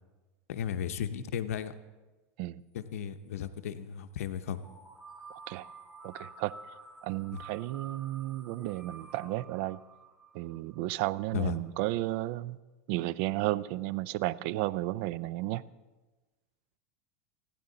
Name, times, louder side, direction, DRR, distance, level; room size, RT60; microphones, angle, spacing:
voice 1, 0.5-1.8 2.7-4.6 7.3-7.4 11.3-11.6, left 9 dB, 85° left, 10 dB, 0.8 m, -35 dB
sound 1, 4.6-11.4, right 4 dB, 10° right, 2.4 m, -50 dB
voice 2, 5.3-5.7 6.0-6.5 7.0-9.8 10.3-12.6 12.9-15.6, right 17 dB, 60° right, 18 dB, 0.5 m, -33 dB
28.0 x 10.0 x 3.9 m, 1.2 s
supercardioid pair, 125°, 8 cm